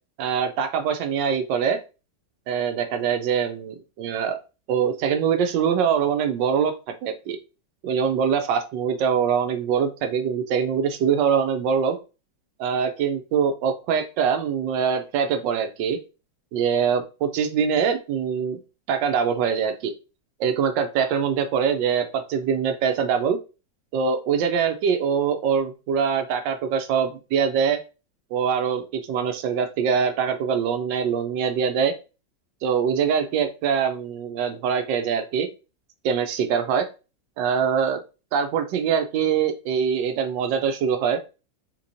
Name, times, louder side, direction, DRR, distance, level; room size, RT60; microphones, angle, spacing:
voice 1, 0.2-1.8 2.5-4.4 4.7-6.7 7.0-7.4 7.8-12.0 12.6-16.0 16.5-18.6 18.9-19.9 20.4-23.4 23.9-27.8 28.3-31.9 32.6-35.5 36.0-36.9 37.4-38.0 38.3-41.2, right 7 dB, 80° right, 8 dB, 1.3 m, -23 dB
4.0 x 3.0 x 2.5 m, 0.31 s
omnidirectional pair, 2.0 m